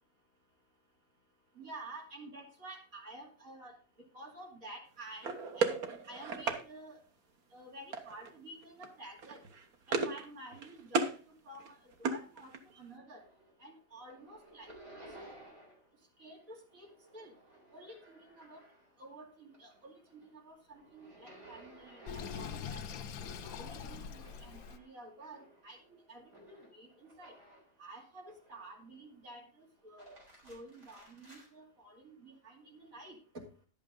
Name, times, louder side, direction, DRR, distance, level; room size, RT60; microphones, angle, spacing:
voice 1, 1.5-5.7 6.1-7.0 7.5-9.5 9.9-13.2 13.6-14.7 15.2-15.3 16.2-16.9 17.1-17.3 17.7-18.6 19.0-22.8 23.4-27.3 27.8-30.2 30.4-33.2, right 2 dB, 70° right, -1 dB, 3.1 m, -51 dB
sound 1, 5.2-6.6 7.9-8.3 8.6-8.9 9.2-10.3 10.5-11.2 11.5-12.8, right 4 dB, 85° right, 1.6 m, -35 dB
sound 2, 12.9-13.6 13.9-15.9 16.2-19.1 19.4-27.8 28.3-28.9 29.8-31.5, right 1 dB, 55° right, 4.2 m, -57 dB
Sink (filling or washing), 22.1-24.8, left 7 dB, 80° left, 1.2 m, -43 dB
11.0 x 8.6 x 3.8 m, 0.37 s
omnidirectional pair, 1.5 m